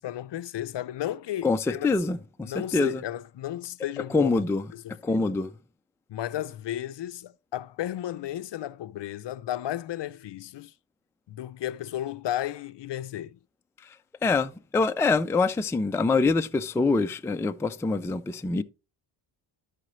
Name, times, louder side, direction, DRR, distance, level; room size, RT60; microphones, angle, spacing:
voice 1, 0.0-1.9 2.4-4.4 4.7-5.3 6.1-10.7 11.3-13.4, left 12 dB, 60° left, 0.6 m, -34 dB
voice 2, 1.4-3.0 4.1-4.6 5.0-5.5 14.2-18.6, left 3 dB, 5° left, 0.3 m, -25 dB
13.0 x 5.0 x 3.1 m
cardioid pair, 100°, 50 cm